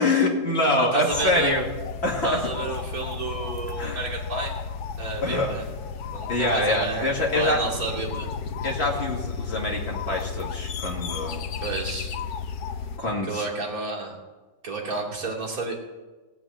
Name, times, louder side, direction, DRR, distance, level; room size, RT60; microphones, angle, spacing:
voice 1, 0.0-1.7 2.0-2.4 3.8-4.0 5.2-5.5 6.3-7.6 8.6-11.4 13.0-13.5, left 2 dB, 40° left, -1 dB, 2.6 m, -25 dB
voice 2, 0.8-1.5 2.2-4.5 5.0-5.6 6.1-7.0 7.3-8.3 11.6-12.1 13.2-14.1 14.6-15.8, right 3 dB, 55° right, -3 dB, 3.2 m, -30 dB
sound 1, 1.1-13.0, left 6 dB, 70° left, 1.2 m, -33 dB
17.5 x 6.0 x 8.8 m, 1.3 s
omnidirectional pair, 1.8 m